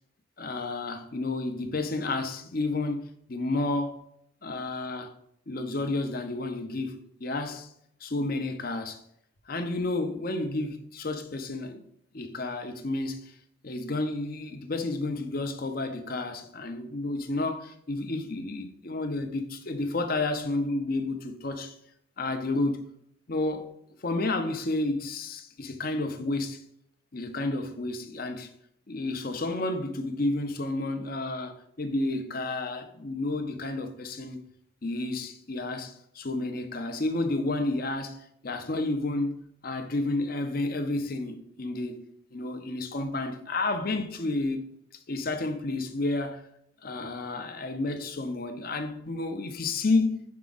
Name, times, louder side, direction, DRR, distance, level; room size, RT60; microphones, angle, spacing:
voice 1, 0.4-4.0 4.4-5.1 5.5-7.7 8.0-9.0 9.5-11.8 12.1-13.4 13.6-21.8 22.2-22.9 23.3-23.7 24.0-26.6 27.1-28.5 28.9-34.4 34.8-42.0 42.3-44.6 45.1-46.5 46.8-50.2, left 2 dB, 45° left, 0.7 m, -31 dB
6.1 x 4.7 x 3.9 m
head